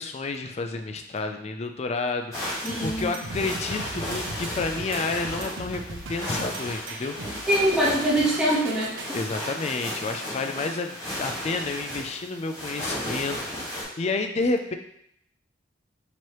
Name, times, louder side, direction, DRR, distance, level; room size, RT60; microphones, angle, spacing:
voice 1, 0.0-7.4 7.9-8.0 9.1-14.7, left 3 dB, 35° left, 6 dB, 0.4 m, -30 dB
sound 1, 2.3-13.8, left 1 dB, 20° left, 1.4 m, -34 dB
voice 2, 2.6-3.1 7.5-9.2, equal, 5° right, -8 dB, 1.0 m, -24 dB
sound 2, 2.7-9.1, right 3 dB, 80° right, 0.5 m, -38 dB
4.6 x 3.0 x 3.0 m, 0.72 s
head